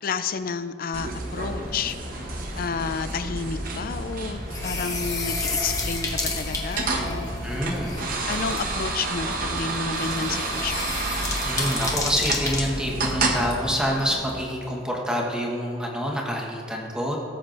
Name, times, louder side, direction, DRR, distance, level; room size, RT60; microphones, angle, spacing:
voice 1, 0.0-2.0 2.5-7.3 8.3-10.8, left 5 dB, 50° left, 12 dB, 0.4 m, -31 dB
sound 1, 0.9-14.4, left 3 dB, 20° left, 1.0 m, -33 dB
sound 2, 0.9-13.5, right 2 dB, 50° right, 1.0 m, -30 dB
voice 2, 7.4-8.0 11.4-17.2, equal, 5° right, -2 dB, 1.2 m, -27 dB
16.5 x 7.6 x 2.6 m, 2.8 s
head